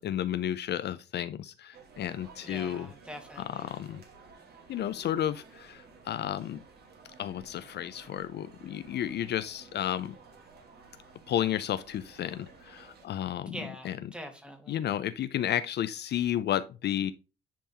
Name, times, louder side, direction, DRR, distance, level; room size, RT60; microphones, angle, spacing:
voice 1, 0.0-2.9 3.4-4.0 4.7-6.6 7.2-10.1 11.3-13.6 13.8-14.0 14.7-17.1, left 11 dB, 60° left, 0.4 m, -32 dB
sound 1, 1.7-13.1, right 4 dB, 55° right, 1.9 m, -54 dB
voice 2, 2.4-3.7 13.5-14.8, equal, 5° right, 1.7 m, -44 dB
10.0 x 3.4 x 2.8 m
cardioid pair, 90°, 20 cm